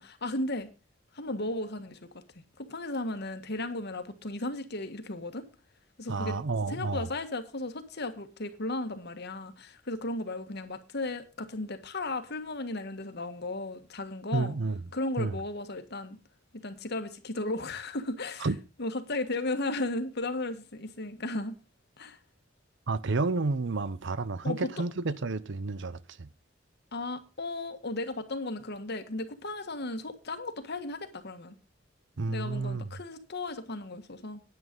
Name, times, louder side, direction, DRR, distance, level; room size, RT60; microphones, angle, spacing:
voice 1, 0.0-0.7 1.1-2.1 2.6-5.4 6.0-6.4 6.7-14.5 14.9-16.2 16.5-18.5 18.8-21.6 22.0-22.2 24.4-24.6 26.9-31.5 32.3-34.4, left 2 dB, 60° left, 1.6 m, -35 dB
voice 2, 6.1-7.1 14.3-14.8 15.2-15.4 18.4-18.6 22.9-26.3 32.2-32.9, right 3 dB, 65° right, 0.7 m, -30 dB
9.8 x 9.4 x 5.3 m
head